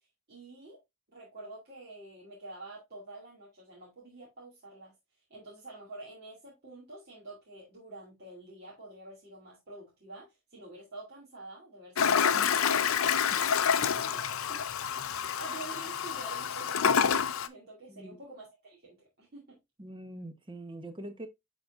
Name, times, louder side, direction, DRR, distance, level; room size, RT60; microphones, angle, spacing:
voice 1, 0.3-0.8 1.1-4.9 5.3-13.0 13.5-14.6 15.4-17.1 17.5-19.6, right 2 dB, 50° right, 2.3 m, -48 dB
Toilet flush, 12.0-17.5, left 7 dB, 80° left, 0.6 m, -28 dB
voice 2, 17.9-18.2 19.8-21.3, right 1 dB, 25° right, 0.9 m, -43 dB
10.5 x 3.9 x 2.4 m
head